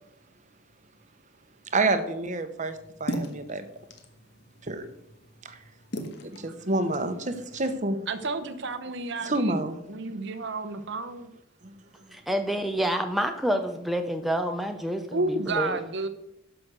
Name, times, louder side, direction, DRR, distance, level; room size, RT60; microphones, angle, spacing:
voice 1, 1.7-3.6 4.6-4.9 5.4-5.6 6.2-8.0 9.2-10.1, right 2 dB, 35° right, 9 dB, 1.1 m, -28 dB
sound 1, 2.6-7.7, equal, 55° left, 1.4 m, -39 dB
voice 2, 8.1-9.6 9.9-11.3 15.1-16.1, right 3 dB, 60° right, 8 dB, 1.0 m, -31 dB
voice 3, 12.1-15.8, equal, ahead, 5 dB, 0.6 m, -28 dB
11.0 x 6.2 x 6.5 m, 0.80 s
head